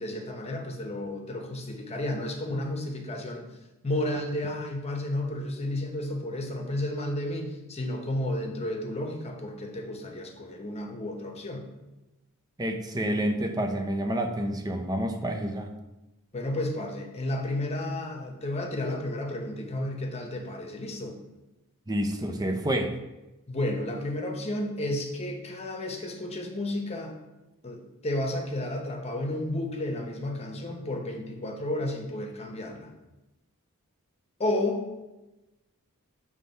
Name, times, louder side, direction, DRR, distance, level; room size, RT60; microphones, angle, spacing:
voice 1, 0.0-3.5 3.8-11.6 16.3-21.2 23.5-27.2 27.6-32.9 34.4-34.8, left 1 dB, 30° left, 2 dB, 0.9 m, -32 dB
voice 2, 12.6-15.8 21.9-23.0, right 1 dB, 15° right, 5 dB, 0.6 m, -28 dB
7.4 x 3.3 x 5.4 m, 1.0 s
head